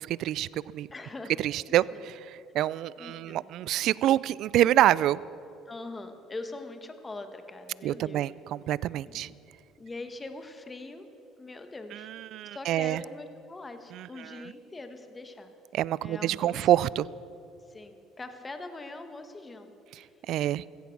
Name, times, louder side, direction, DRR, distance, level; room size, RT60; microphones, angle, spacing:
voice 1, 0.0-0.9 1.4-5.2 7.8-9.3 11.9-13.0 13.9-14.5 15.7-17.1 19.9-20.6, right 13 dB, 65° right, 21 dB, 0.3 m, -27 dB
voice 2, 0.9-1.3 1.9-2.1 3.0-3.5 5.6-8.3 9.1-9.2 9.8-11.1 11.4-12.1 12.4-15.5 16.0-16.6 17.7-19.7, left 2 dB, 20° left, 7 dB, 1.4 m, -42 dB
15.5 x 15.0 x 6.0 m, 2.6 s
supercardioid pair, 95°, 0 cm